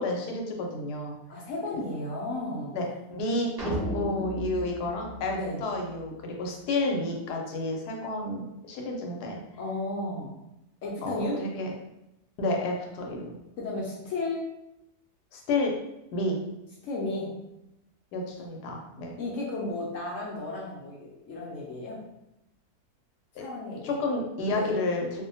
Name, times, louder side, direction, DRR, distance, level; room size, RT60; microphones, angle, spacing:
voice 1, 0.0-1.1 2.7-9.4 11.0-11.7 12.4-13.3 15.3-15.7 16.1-16.4 18.1-19.1 23.4-23.5 23.8-25.2, left 2 dB, 90° left, 1 dB, 1.1 m, -30 dB
voice 2, 1.3-2.8 5.3-5.6 9.6-10.3 10.8-11.4 13.6-14.4 16.8-17.3 19.2-22.0 23.4-23.9 24.5-24.7, left 2 dB, 65° left, -4 dB, 0.8 m, -33 dB
sound 1, 3.6-6.0, right 1 dB, 75° right, 0.5 m, -34 dB
2.6 x 2.1 x 2.6 m, 0.88 s
omnidirectional pair, 1.7 m